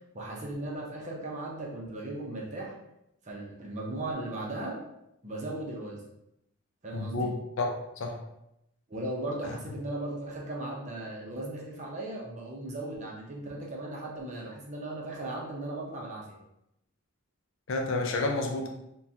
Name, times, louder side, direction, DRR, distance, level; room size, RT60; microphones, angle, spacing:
voice 1, 0.1-2.7 3.2-4.8 5.2-6.0 6.8-7.3 8.9-16.4, right 2 dB, 30° right, -2 dB, 0.6 m, -37 dB
voice 2, 6.9-8.2 17.7-18.7, left 2 dB, 60° left, 2 dB, 0.5 m, -30 dB
3.6 x 2.3 x 2.7 m, 0.83 s
head